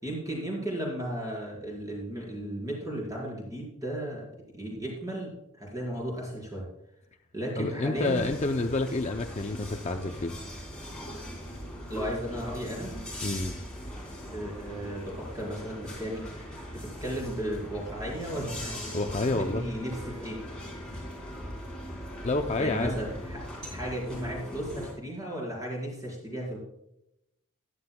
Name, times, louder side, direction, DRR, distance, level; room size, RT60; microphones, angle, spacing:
voice 1, 0.0-4.2 4.5-6.6 7.3-8.3 11.9-12.9 14.3-16.4 16.7-18.7 19.2-20.4 22.6-26.6, right 1 dB, 15° right, -3 dB, 4.6 m, -35 dB
voice 2, 7.6-10.4 13.2-13.6 18.9-19.7 22.2-22.9, left 2 dB, 30° left, 5 dB, 0.6 m, -29 dB
sound 1, 7.9-24.9, equal, 5° left, 3.6 m, -40 dB
14.5 x 11.5 x 2.3 m, 0.83 s
head